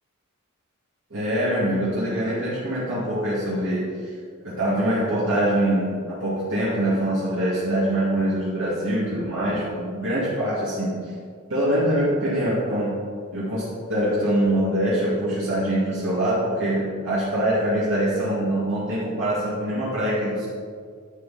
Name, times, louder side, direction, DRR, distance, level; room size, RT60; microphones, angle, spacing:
voice 1, 1.1-3.9 4.4-11.1 11.5-13.0 13.3-20.5, right 1 dB, 60° right, -9 dB, 2.3 m, -24 dB
11.5 x 6.6 x 4.2 m, 2.1 s
head